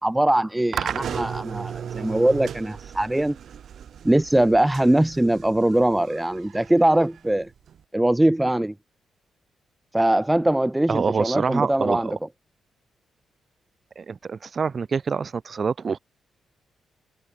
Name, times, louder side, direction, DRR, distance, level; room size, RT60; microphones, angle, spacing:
voice 1, 0.0-3.4 4.0-7.5 7.9-8.7 9.9-12.1, right 1 dB, 10° right, 0.5 m, -21 dB
sound 1, 0.7-7.8, right 8 dB, 65° right, 0.7 m, -35 dB
voice 2, 10.9-12.1 14.0-16.0, right 5 dB, 50° right, 2.1 m, -26 dB
hypercardioid pair, 45°, 0 cm